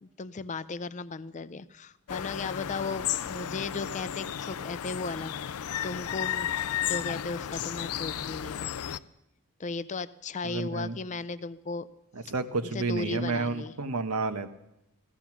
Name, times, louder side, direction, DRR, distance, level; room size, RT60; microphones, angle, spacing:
voice 1, 0.0-5.6 5.8-6.5 6.9-9.0 9.6-11.9 12.7-13.7, left 3 dB, 35° left, 15 dB, 0.5 m, -36 dB
sound 1, 2.1-9.0, left 10 dB, 85° left, 0.5 m, -33 dB
voice 2, 10.4-11.0 12.1-14.5, right 3 dB, 90° right, 9 dB, 1.1 m, -30 dB
15.5 x 14.0 x 6.0 m, 0.87 s
head